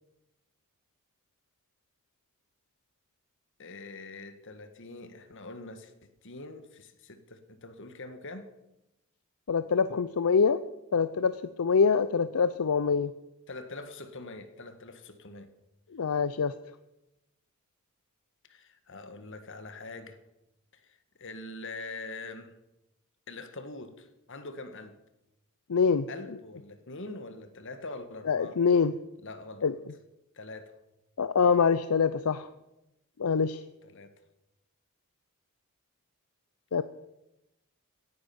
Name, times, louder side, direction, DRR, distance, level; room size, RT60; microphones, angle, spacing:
voice 1, 3.6-8.5 13.5-15.5 18.5-20.2 20.7-22.5 23.3-25.0 26.1-28.6 29.2-29.7 30.3-30.8 33.8-34.2, left 2 dB, 60° left, 1.6 m, -44 dB
voice 2, 9.5-10.6 10.9-13.1 15.9-16.5 25.7-26.1 28.3-28.9 29.6-29.7 31.2-32.5 33.2-33.6 36.7-36.8, left 5 dB, 80° left, 0.6 m, -25 dB
17.0 x 9.9 x 7.0 m
head